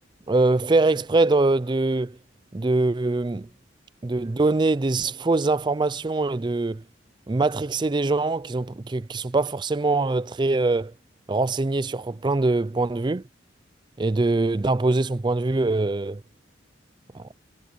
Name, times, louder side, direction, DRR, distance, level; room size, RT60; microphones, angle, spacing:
voice 1, 0.3-2.2 2.5-3.5 4.0-6.8 7.3-10.9 11.3-13.2 14.0-16.2 17.1-17.3, right 2 dB, 25° right, 0.4 m, -23 dB
head